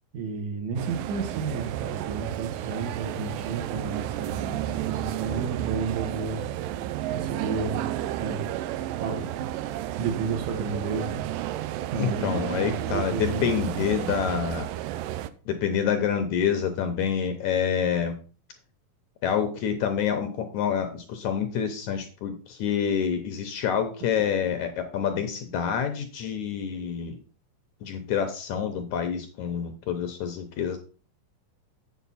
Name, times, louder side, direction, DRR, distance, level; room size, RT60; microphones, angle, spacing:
voice 1, 0.1-6.4 7.1-7.9 8.2-8.4 9.0-9.3 10.0-11.3 11.9-13.6, right 4 dB, 60° right, 3 dB, 2.8 m, -32 dB
sound 1, 0.8-15.3, right 13 dB, 80° right, 2.2 m, -32 dB
voice 2, 12.0-14.7 15.5-18.2 19.2-27.2 27.8-30.8, left 8 dB, 70° left, 6 dB, 1.9 m, -27 dB
7.8 x 7.2 x 4.1 m, 0.38 s
omnidirectional pair, 4.0 m